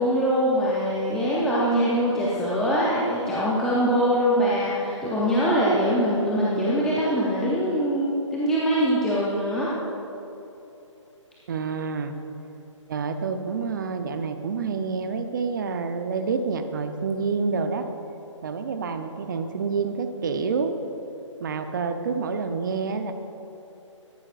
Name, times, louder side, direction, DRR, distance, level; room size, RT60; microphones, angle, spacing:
voice 1, 0.0-9.7, equal, 5° left, -8 dB, 0.6 m, -23 dB
voice 2, 11.5-12.1 12.9-17.9 18.4-20.7 21.4-23.1, right 5 dB, 40° right, 8 dB, 0.7 m, -28 dB
13.0 x 11.5 x 2.5 m, 3.0 s
figure-of-eight pair, 150°, 16 cm